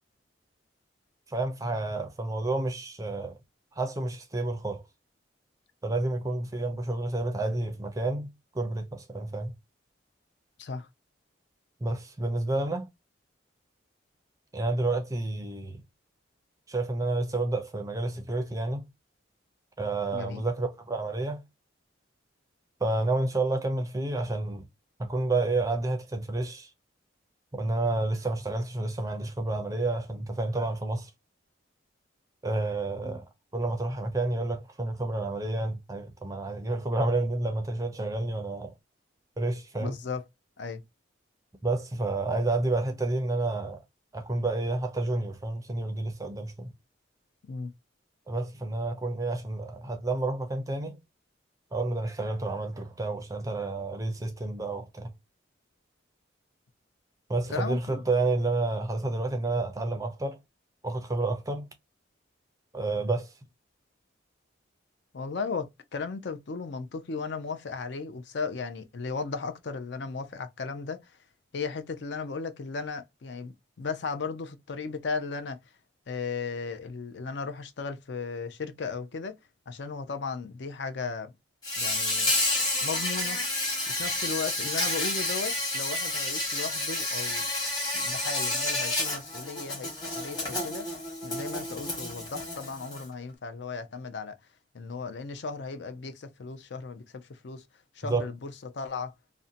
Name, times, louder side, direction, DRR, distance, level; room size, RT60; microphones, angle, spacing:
voice 1, 1.3-3.3 3.8-4.8 5.8-8.3 8.6-9.5 11.8-12.9 14.5-15.8 16.7-18.8 19.8-21.4 22.8-24.6 25.0-26.7 27.5-31.1 32.4-33.2 33.5-38.7 39.4-40.0 41.6-43.8 44.1-46.7 48.3-50.9 51.7-55.1 57.3-60.4 60.8-61.7 62.7-63.3 98.0-98.3, right 2 dB, 15° right, 0.4 m, -30 dB
voice 2, 20.1-20.4 33.0-33.2 39.8-40.2 40.6-40.8 47.5-47.7 57.5-58.0 65.1-71.0 71.5-75.6 76.1-79.4 79.7-81.3 81.8-82.3 82.8-83.4 83.9-87.5 87.9-90.9 91.2-94.4 94.7-97.6 98.0-99.1, left 4 dB, 60° left, 0.5 m, -36 dB
Insect, 81.6-93.0, left 2 dB, 20° left, 1.1 m, -30 dB
2.6 x 2.1 x 2.5 m
head